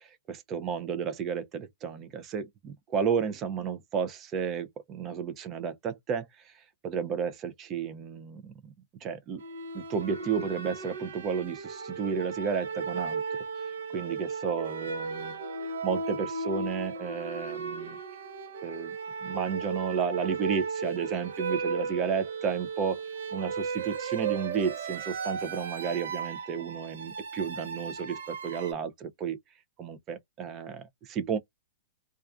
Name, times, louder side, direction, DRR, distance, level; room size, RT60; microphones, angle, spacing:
voice 1, 0.0-8.7 9.0-9.4 9.7-13.2 13.9-15.4 15.8-18.0 18.6-19.0 19.2-23.0 23.3-29.4 29.8-31.4, right 6 dB, 20° right, 0.4 m, -32 dB
sound 1, 9.4-28.7, right 5 dB, 80° right, 0.7 m, -35 dB
2.4 x 2.2 x 2.3 m
hypercardioid pair, 160°, 0 cm